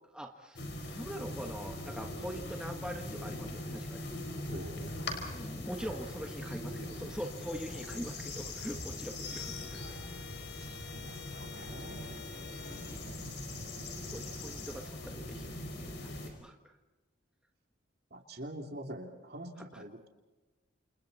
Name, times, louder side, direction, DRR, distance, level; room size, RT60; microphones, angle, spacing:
voice 1, 0.1-4.0 5.3-10.0 10.5-10.8 13.9-16.8 19.6-19.8, equal, 5° right, 2 dB, 1.4 m, -43 dB
sound 1, 0.5-16.3, left 2 dB, 60° left, 5.1 m, -41 dB
voice 2, 4.5-5.1 7.7-7.8 10.6-12.4 16.1-16.4 18.1-20.1, right 1 dB, 55° right, 3 dB, 3.0 m, -46 dB
29.0 x 28.5 x 4.2 m, 1.1 s
head